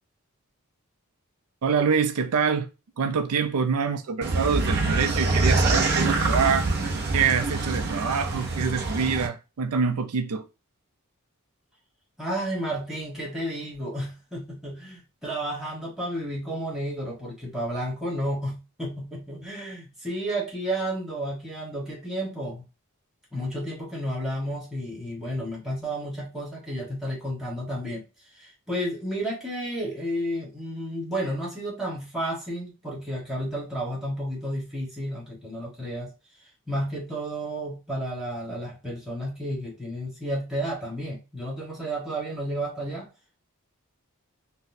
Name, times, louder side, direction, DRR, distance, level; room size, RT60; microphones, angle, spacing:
voice 1, 1.6-2.7 3.0-6.7 7.1-10.5, right 6 dB, 90° right, 0.4 m, -25 dB
sound 1, 4.2-9.3, right 3 dB, 45° right, 0.6 m, -25 dB
voice 2, 12.2-22.6 23.3-28.0 28.3-36.1 36.7-43.1, right 1 dB, ahead, 1.3 m, -32 dB
4.0 x 2.0 x 2.6 m
head